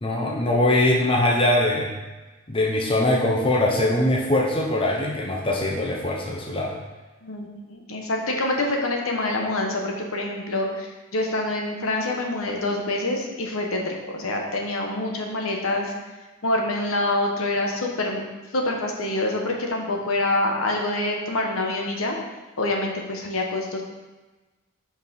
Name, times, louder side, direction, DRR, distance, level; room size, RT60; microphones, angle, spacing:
voice 1, 0.0-1.9 2.5-6.7, left 1 dB, 25° left, 0 dB, 0.7 m, -22 dB
voice 2, 7.2-15.9 16.4-18.2 18.5-22.2 22.6-23.8, left 2 dB, 75° left, 1 dB, 1.1 m, -26 dB
5.9 x 4.6 x 5.4 m, 1.2 s
head